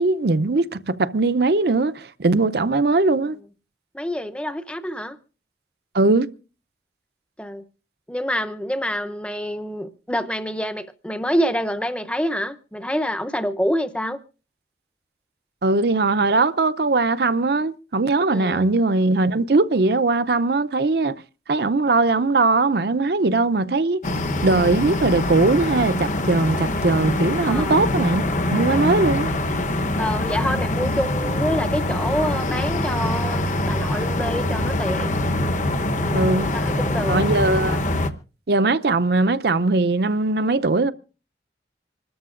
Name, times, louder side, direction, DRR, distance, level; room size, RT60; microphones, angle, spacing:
voice 1, 0.0-3.4 5.9-6.3 15.6-21.1 21.5-24.0 24.4-28.2 28.5-29.3 36.1-36.5 37.1-37.8 38.5-40.9, right 3 dB, 60° right, 0.6 m, -20 dB
voice 2, 3.9-5.2 7.4-7.6 8.1-14.2 18.3-18.7 27.5-27.8 30.0-35.2 36.0-36.3 36.5-37.2, equal, 5° left, 0.7 m, -27 dB
sound 1, 24.0-38.1, left 1 dB, 45° left, 1.0 m, -24 dB
26.0 x 13.5 x 2.5 m
head